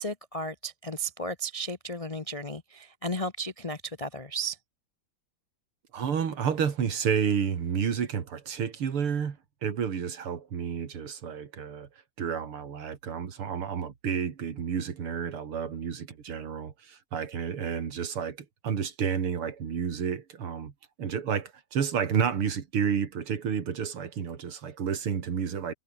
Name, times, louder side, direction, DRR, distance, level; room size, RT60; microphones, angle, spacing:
voice 1, 0.0-4.6, right 1 dB, 55° left, 0.3 m, -34 dB
voice 2, 5.9-11.9 12.2-18.4 18.6-20.7 21.0-25.7, right 7 dB, 85° right, 3.0 m, -30 dB
omnidirectional pair, 2.4 m